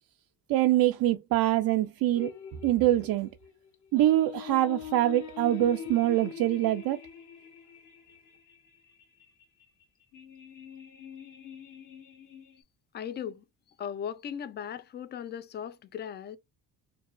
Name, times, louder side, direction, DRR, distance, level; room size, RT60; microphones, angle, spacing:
voice 1, 0.5-2.3 2.6-3.3 3.9-7.0, right 14 dB, 60° right, 0.5 m, -24 dB
sound 1, 2.1-12.6, left 8 dB, 45° left, 0.9 m, -44 dB
voice 2, 12.9-13.4 13.8-16.4, left 8 dB, 30° left, 0.4 m, -37 dB
4.6 x 2.3 x 2.5 m
cardioid pair, 140°, 40 cm